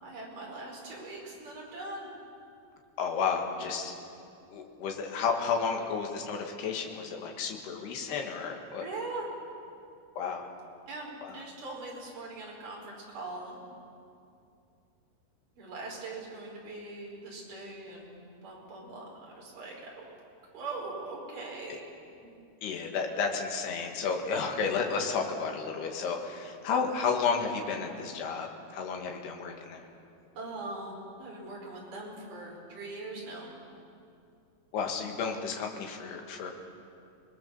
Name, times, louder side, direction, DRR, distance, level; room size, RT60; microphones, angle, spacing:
voice 1, 0.0-2.1 8.8-9.3 10.9-13.6 15.6-20.1 20.5-21.9 30.4-33.5, right 2 dB, 50° right, -2 dB, 6.3 m, -41 dB
voice 2, 3.0-3.9 4.5-8.9 10.2-10.5 11.2-11.4 21.7-21.8 22.6-29.9 34.7-36.5, left 5 dB, 70° left, 2 dB, 3.9 m, -32 dB
28.0 x 20.5 x 7.1 m, 2.5 s
omnidirectional pair, 5.0 m